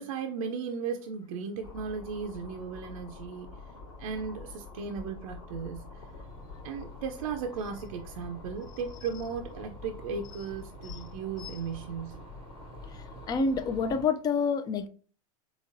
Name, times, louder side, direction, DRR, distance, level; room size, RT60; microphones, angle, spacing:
voice 1, 0.0-3.5 4.0-6.1 6.6-12.3, right 6 dB, 75° right, 0.5 m, -36 dB
sound 1, 1.6-14.0, left 4 dB, 80° left, 1.7 m, -46 dB
sound 2, 6.0-14.1, right 6 dB, 30° right, 0.6 m, -52 dB
voice 2, 12.9-14.9, left 5 dB, 20° left, 0.4 m, -29 dB
4.0 x 2.9 x 2.5 m
hypercardioid pair, 105°, 18 cm